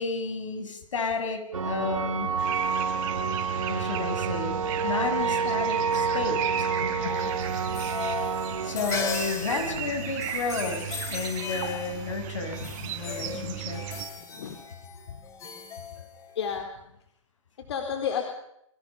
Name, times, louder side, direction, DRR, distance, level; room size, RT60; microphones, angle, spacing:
voice 1, 0.0-2.4 3.7-4.6 4.8-6.7 7.0-7.2 8.6-13.8, left 4 dB, 70° left, 6 dB, 7.5 m, -32 dB
sound 1, 1.5-9.9, right 6 dB, 90° right, 2.4 m, -29 dB
sound 2, 2.4-14.1, right 9 dB, 35° right, 5.3 m, -36 dB
voice 2, 6.8-7.3 12.6-13.4 14.3-14.6 16.4-16.7 17.7-18.2, left 7 dB, 55° left, 4 dB, 4.3 m, -33 dB
sound 3, 7.1-16.6, left 7 dB, 20° left, 3.2 m, -38 dB
29.0 x 25.0 x 5.3 m, 0.76 s
hypercardioid pair, 145°, 17 cm